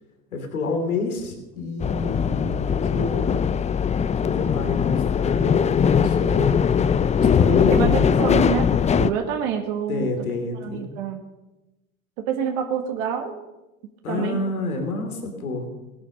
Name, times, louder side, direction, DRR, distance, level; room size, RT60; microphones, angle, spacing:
voice 1, 0.3-3.4 4.1-6.6 7.1-8.0 9.9-10.9 14.0-15.7, left 3 dB, 90° left, 5 dB, 3.1 m, -28 dB
sound 1, 1.8-9.1, left 7 dB, 15° left, 0.5 m, -20 dB
voice 2, 7.7-10.1 10.6-11.2 12.2-13.4 14.1-14.4, right 8 dB, 65° right, 3 dB, 2.1 m, -27 dB
17.5 x 11.0 x 6.5 m, 1.0 s
hypercardioid pair, 85°, 42 cm